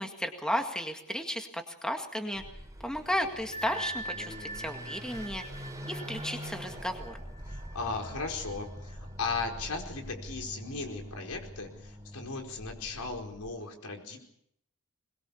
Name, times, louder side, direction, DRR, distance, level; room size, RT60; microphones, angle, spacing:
voice 1, 0.0-2.4 2.8-7.2, equal, 5° left, 4 dB, 2.0 m, -34 dB
Car passing by / Accelerating revving vroom, 2.3-13.6, equal, 15° right, 3.7 m, -44 dB
Bell, 3.5-8.9, right 1 dB, 25° left, 1.0 m, -43 dB
voice 2, 7.5-14.2, left 4 dB, 80° left, 3 dB, 4.7 m, -37 dB
22.5 x 21.0 x 7.1 m, 0.75 s
head